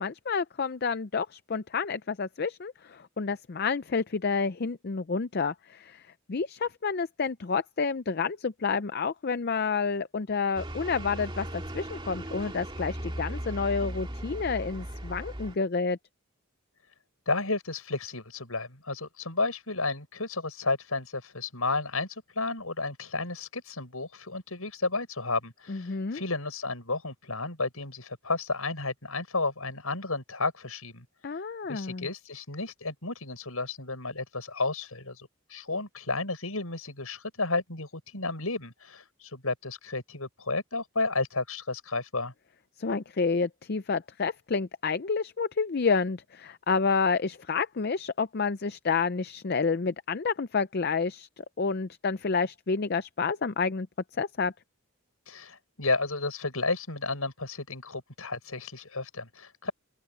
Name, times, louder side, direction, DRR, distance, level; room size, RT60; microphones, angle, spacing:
voice 1, 0.0-6.0 6.3-16.0 25.7-26.2 31.2-32.1 42.8-53.9 54.2-54.5, left 5 dB, 45° left, 0.5 m, -29 dB
sound 1, 10.6-15.6, right 1 dB, 20° right, 2.3 m, -37 dB
voice 2, 17.3-31.1 31.7-42.3 55.3-59.7, left 3 dB, 75° left, 7.2 m, -32 dB
open air
head